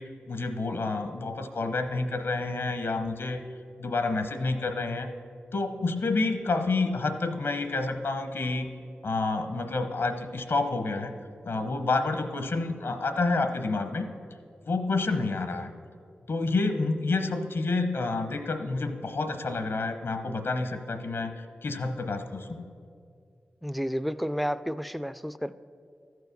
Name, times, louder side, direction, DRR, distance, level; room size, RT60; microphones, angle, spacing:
voice 1, 0.0-3.4 3.8-5.1 5.5-8.7 9.0-11.1 11.4-14.1 14.7-15.7 16.3-22.6, left 3 dB, 70° left, 8 dB, 0.8 m, -29 dB
voice 2, 23.6-25.6, equal, ahead, 14 dB, 0.4 m, -31 dB
14.0 x 4.8 x 6.6 m, 2.3 s
cardioid pair, 50°, 4 cm